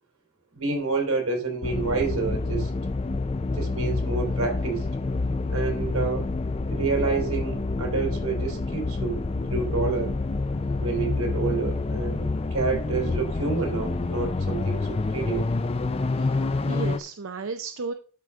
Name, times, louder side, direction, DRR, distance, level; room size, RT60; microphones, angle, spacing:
voice 1, 0.5-2.7 3.5-4.8 5.5-6.3 6.7-9.2 9.5-10.1 10.8-15.4, right 4 dB, 90° right, 2 dB, 3.7 m, -28 dB
sound 1, 1.6-17.0, left 3 dB, 25° left, 0.4 m, -28 dB
voice 2, 16.1-17.9, right 4 dB, 65° right, 8 dB, 0.6 m, -34 dB
12.0 x 4.8 x 3.7 m, 0.39 s
head